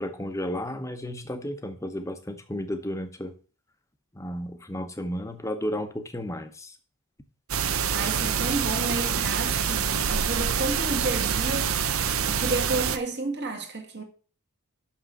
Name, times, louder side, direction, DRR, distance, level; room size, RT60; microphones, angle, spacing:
voice 1, 0.0-3.3 4.1-6.8, equal, 15° left, 0.9 m, -33 dB
voice 2, 7.5-11.7 12.3-14.0, right 2 dB, 50° right, 1.7 m, -31 dB
sound 1, 7.5-13.0, right 7 dB, 65° right, 0.7 m, -26 dB
6.3 x 6.2 x 6.7 m
head